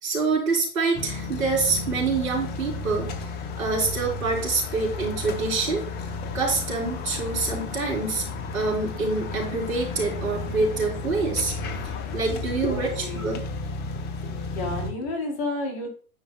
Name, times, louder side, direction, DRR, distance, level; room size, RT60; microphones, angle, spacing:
voice 1, 0.0-5.8 6.3-8.2 8.5-11.5 12.1-13.4, right 3 dB, 70° right, 0 dB, 3.6 m, -26 dB
sound 1, 0.9-14.9, left 3 dB, 25° left, 0.7 m, -33 dB
voice 2, 12.6-13.3 14.2-15.9, left 2 dB, 40° left, 1 dB, 3.4 m, -31 dB
9.6 x 5.4 x 2.2 m, 0.40 s
hypercardioid pair, 115°, 43 cm